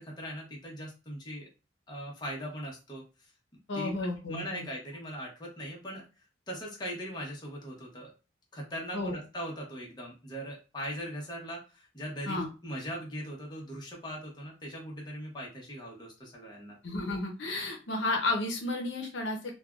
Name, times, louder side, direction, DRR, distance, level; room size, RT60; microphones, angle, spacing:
voice 1, 0.0-1.5 1.9-3.3 3.7-6.0 6.5-8.1 8.5-16.8, equal, 25° left, -2 dB, 0.9 m, -40 dB
voice 2, 3.7-4.7 8.9-9.2 12.3-12.5 16.8-19.5, left 2 dB, 75° left, 1 dB, 0.7 m, -32 dB
3.2 x 2.3 x 2.4 m, 0.31 s
head